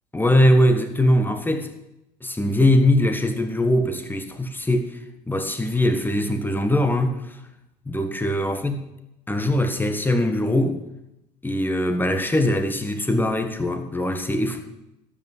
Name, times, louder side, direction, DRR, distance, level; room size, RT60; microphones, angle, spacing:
voice 1, 0.1-1.7 2.2-5.0 5.3-7.2 7.9-8.8 9.3-10.8 11.4-14.6, left 1 dB, 10° left, 1.5 m, -21 dB
12.0 x 5.7 x 7.9 m
figure-of-eight pair, 60°, 18 cm